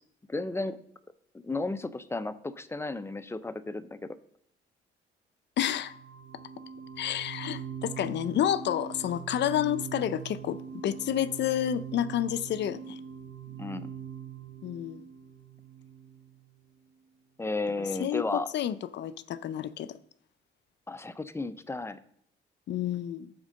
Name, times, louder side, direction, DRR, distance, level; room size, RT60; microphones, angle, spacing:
voice 1, 0.3-0.8 1.4-4.2 13.5-13.9 17.4-18.5 20.9-22.0, left 2 dB, 15° left, 13 dB, 0.5 m, -33 dB
voice 2, 5.6-5.9 7.0-13.0 14.6-15.0 18.0-20.0 22.7-23.3, left 11 dB, 60° left, 16 dB, 0.5 m, -30 dB
sound 1, 5.6-16.6, right 8 dB, 85° right, 1.0 m, -42 dB
9.5 x 3.7 x 6.3 m, 0.69 s
cardioid pair, 90°, 20 cm